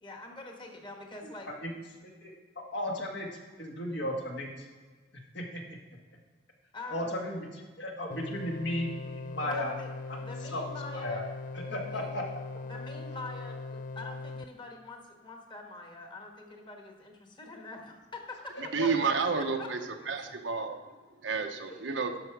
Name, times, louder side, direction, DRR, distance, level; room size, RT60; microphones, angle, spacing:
voice 1, 0.0-1.5 6.7-7.1 9.4-9.9 10.2-11.2 11.6-12.2 12.6-18.5 18.8-18.9 19.6-19.7, left 3 dB, 25° left, 2 dB, 1.4 m, -44 dB
voice 2, 2.7-3.3 3.6-4.7 5.3-5.6 6.9-9.7 10.1-10.6 10.9-11.2 11.5-12.2 18.5-18.9 21.7-21.8, left 1 dB, 70° left, 0 dB, 1.8 m, -35 dB
sound 1, 8.1-14.5, left 3 dB, 45° left, 0.3 m, -40 dB
voice 3, 18.7-19.8 20.1-20.8 21.2-22.1, right 5 dB, 85° right, 5 dB, 0.9 m, -30 dB
11.0 x 6.2 x 4.7 m, 1.4 s
head